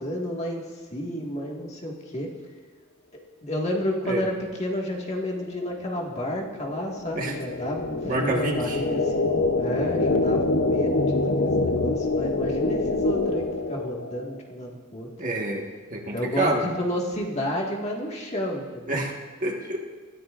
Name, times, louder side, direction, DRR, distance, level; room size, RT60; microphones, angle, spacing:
voice 1, 0.0-2.3 3.4-15.1 16.1-19.0, equal, 30° left, -1 dB, 1.8 m, -31 dB
sound 1, 5.5-14.3, left 2 dB, 60° left, 0.7 m, -26 dB
voice 2, 8.0-8.8 15.2-16.7 18.9-19.1 19.4-19.8, right 1 dB, 40° right, 0 dB, 1.5 m, -27 dB
23.0 x 13.5 x 2.5 m, 1.4 s
head